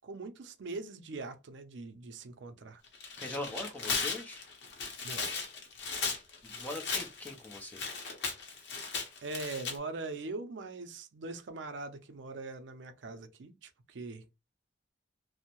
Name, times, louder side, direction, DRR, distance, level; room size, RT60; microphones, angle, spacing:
voice 1, 0.0-2.8 5.0-5.4 9.2-14.2, right 3 dB, 75° right, 0.5 m, -42 dB
Tearing, 2.9-9.8, left 5 dB, 60° left, 0.7 m, -37 dB
voice 2, 3.2-4.4 6.4-7.9, left 1 dB, 10° left, 0.5 m, -41 dB
2.6 x 2.0 x 2.9 m
head